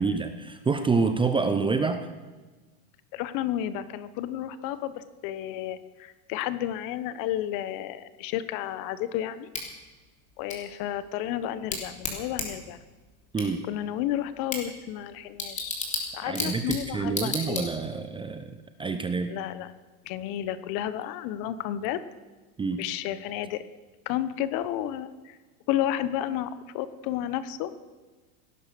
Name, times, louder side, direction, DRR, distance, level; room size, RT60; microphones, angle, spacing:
voice 1, 0.0-2.1 13.3-13.6 16.2-19.3 22.6-22.8, right 4 dB, 10° right, 9 dB, 0.7 m, -27 dB
voice 2, 3.1-9.5 10.4-12.8 13.6-15.8 16.1-17.7 19.3-19.7 20.1-22.0 22.8-23.6 24.1-25.4 25.7-27.7, left 12 dB, 45° left, 14 dB, 1.2 m, -32 dB
Bicycle / Tick, 9.5-18.1, left 3 dB, 15° left, 3.5 m, -36 dB
17.5 x 10.5 x 6.9 m, 1.3 s
supercardioid pair, 130°, 47 cm